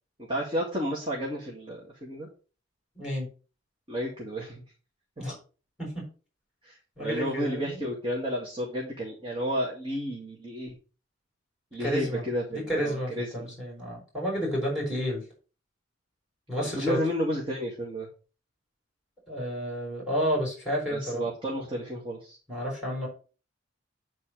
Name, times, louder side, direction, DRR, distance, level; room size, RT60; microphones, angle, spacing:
voice 1, 0.3-2.3 3.9-4.6 6.6-10.7 11.7-13.6 16.6-18.1 20.9-22.4, equal, 25° right, -3 dB, 2.2 m, -32 dB
voice 2, 2.9-3.3 5.2-5.4 5.8-6.0 7.0-7.8 11.8-12.2 12.5-15.2 16.5-17.0 19.3-21.2 22.5-23.1, equal, 5° right, -2 dB, 6.0 m, -30 dB
9.7 x 4.4 x 6.3 m, 0.36 s
head